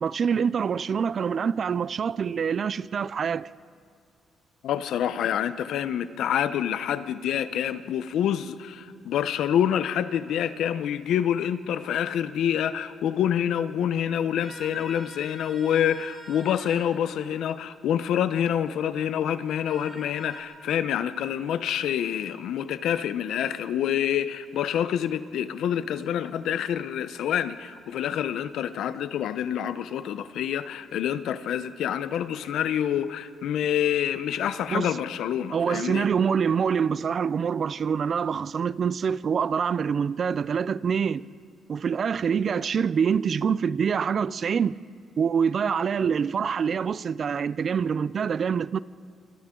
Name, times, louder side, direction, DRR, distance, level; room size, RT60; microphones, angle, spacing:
voice 1, 0.0-3.5 34.7-34.9 35.5-41.2 41.7-44.7 45.2-48.8, right 6 dB, 50° right, 0.5 m, -25 dB
voice 2, 4.6-36.1, left 9 dB, 75° left, 0.8 m, -27 dB
sound 1, 14.4-16.9 19.4-20.4, equal, 10° left, 7.4 m, -45 dB
27.0 x 26.5 x 3.9 m
cardioid pair, 90°, 0 cm